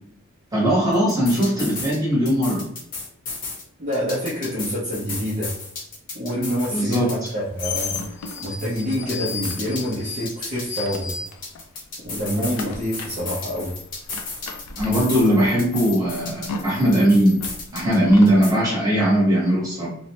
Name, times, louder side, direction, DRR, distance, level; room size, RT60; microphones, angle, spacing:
voice 1, 0.5-2.6 6.7-7.3 14.8-17.4 17.7-19.9, equal, 15° right, -5 dB, 1.1 m, -19 dB
sound 1, 0.9-2.0 2.3-3.6 3.9-7.3 7.6-10.0 10.3-12.6 12.9-15.3 15.6-18.0 18.3-18.5, left 3 dB, 40° left, 0.7 m, -34 dB
voice 2, 3.8-5.6 6.1-11.2 12.0-13.8, equal, 35° right, -8 dB, 0.6 m, -27 dB
sound 2, 7.2-11.8 12.0-18.4, left 4 dB, 75° left, 0.4 m, -35 dB
2.6 x 2.1 x 2.8 m, 0.70 s
head